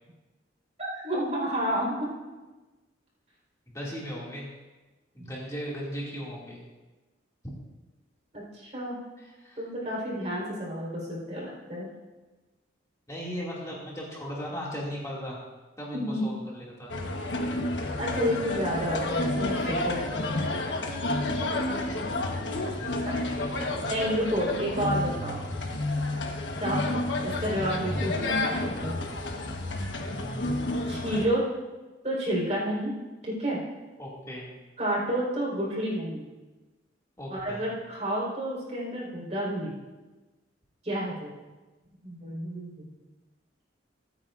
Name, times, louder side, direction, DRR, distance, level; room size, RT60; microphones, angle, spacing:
voice 1, 0.8-2.1 5.2-5.3 8.3-8.9 9.6-11.9 15.9-16.2 18.0-20.0 22.0-22.1 23.9-25.4 26.6-26.9 27.2-29.0 30.9-31.4 32.0-32.9 33.2-33.6 34.8-36.3 37.3-39.8 40.8-41.3 42.0-42.7, equal, 35° right, -5 dB, 4.4 m, -30 dB
voice 2, 3.7-4.5 5.1-6.6 9.2-9.6 13.1-15.4 15.8-17.0 22.8-23.8 34.0-34.5 37.2-37.6, equal, 15° left, -5 dB, 2.4 m, -37 dB
sound 1, 16.9-31.2, left 2 dB, 70° left, 1.3 m, -30 dB
24.0 x 9.6 x 2.6 m, 1.2 s
head